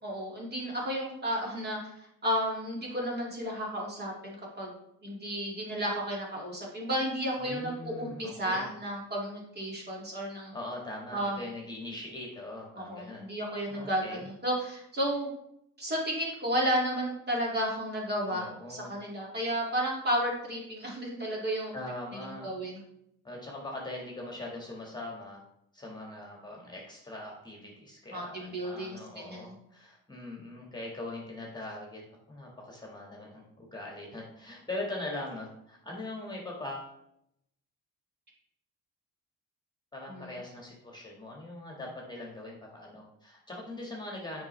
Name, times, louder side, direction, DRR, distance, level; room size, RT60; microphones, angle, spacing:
voice 1, 0.0-1.8 2.2-4.7 5.0-10.5 11.1-11.4 12.8-15.3 15.8-21.7 22.2-22.8 28.1-29.5 40.1-40.4, equal, 35° right, -3 dB, 2.4 m, -32 dB
voice 2, 7.4-8.7 10.5-13.3 13.7-14.2 18.3-18.9 21.7-22.6 23.2-25.4 25.7-32.0 32.3-36.9 39.9-44.5, left 2 dB, 15° left, -2 dB, 1.7 m, -41 dB
7.2 x 5.2 x 3.3 m, 0.77 s
cardioid pair, 90°, 30 cm